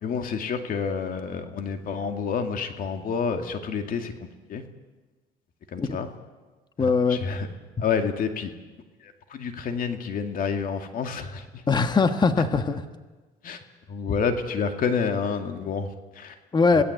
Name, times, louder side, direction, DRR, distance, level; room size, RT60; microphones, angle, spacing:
voice 1, 0.0-4.7 5.7-6.1 6.8-7.5 7.8-8.5 9.0-11.6 13.4-13.6 13.9-16.4 16.7-16.8, left 6 dB, 55° left, 6 dB, 2.4 m, -29 dB
voice 2, 6.8-7.2 11.7-12.8 16.5-16.8, left 4 dB, 25° left, 8 dB, 1.3 m, -21 dB
26.5 x 17.0 x 8.1 m, 1.3 s
cardioid pair, 110°, 17 cm